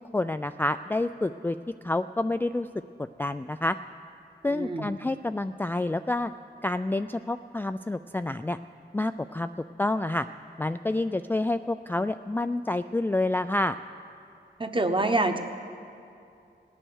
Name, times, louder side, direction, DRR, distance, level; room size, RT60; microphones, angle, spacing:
voice 1, 0.1-1.6 1.8-2.7 3.2-3.8 4.4-6.3 6.6-8.6 8.9-9.5 9.8-10.3 10.6-13.8, left 2 dB, 10° left, 10 dB, 0.3 m, -28 dB
voice 2, 4.5-4.9 14.6-15.4, right 2 dB, 25° right, 7 dB, 1.2 m, -26 dB
18.0 x 9.1 x 6.4 m, 2.6 s
wide cardioid pair, 60°, 19 cm